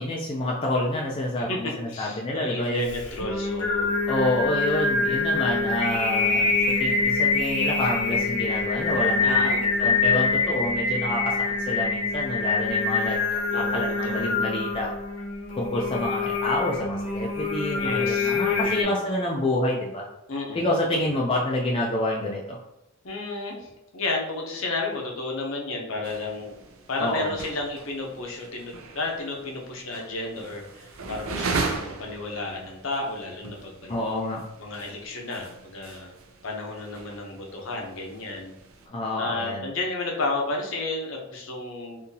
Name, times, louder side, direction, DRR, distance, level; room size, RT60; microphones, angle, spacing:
voice 1, 0.0-2.9 4.1-6.5 6.8-9.5 9.8-14.9 15.6-20.0 20.5-22.6 27.0-27.4 33.9-34.4 38.9-39.7, left 1 dB, 25° left, -2 dB, 0.4 m, -28 dB
voice 2, 1.4-4.0 9.2-9.7 13.5-14.3 17.8-18.9 20.3-20.6 20.9-21.0 23.0-26.5 26.9-34.0 34.6-36.1 36.4-38.5 39.2-42.0, left 2 dB, 60° left, 0 dB, 0.7 m, -32 dB
Singing, 2.9-18.8, left 4 dB, 80° left, 1.0 m, -25 dB
sound 1, 26.0-38.9, right 4 dB, 70° right, 0.5 m, -38 dB
3.8 x 2.7 x 2.7 m, 0.91 s
head